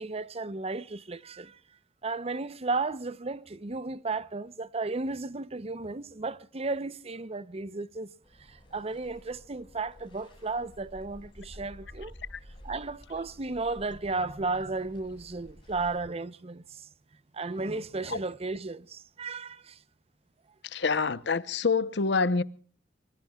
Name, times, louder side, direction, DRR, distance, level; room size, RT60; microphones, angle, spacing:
voice 1, 0.0-1.6 2.0-8.1 8.5-12.1 12.6-16.8 17.3-19.8, right 3 dB, 35° right, 0.7 m, -34 dB
sound 1, 8.2-16.0, equal, 30° left, 6.4 m, -51 dB
voice 2, 20.7-22.4, left 4 dB, 70° left, 0.8 m, -26 dB
26.0 x 23.5 x 2.3 m
head